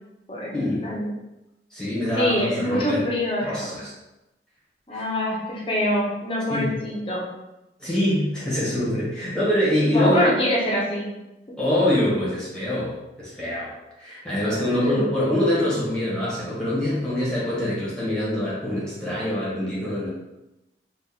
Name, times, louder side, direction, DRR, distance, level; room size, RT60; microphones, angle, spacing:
voice 1, 0.5-0.8 1.7-3.0 3.4-3.9 4.9-5.1 6.5-6.7 7.8-10.3 11.6-20.1, left 1 dB, 5° left, -9 dB, 1.3 m, -24 dB
voice 2, 2.1-3.8 4.9-7.3 9.9-11.1 11.5-11.6 14.7-15.0, left 1 dB, 30° left, -4 dB, 0.8 m, -24 dB
3.1 x 2.5 x 3.8 m, 0.97 s
head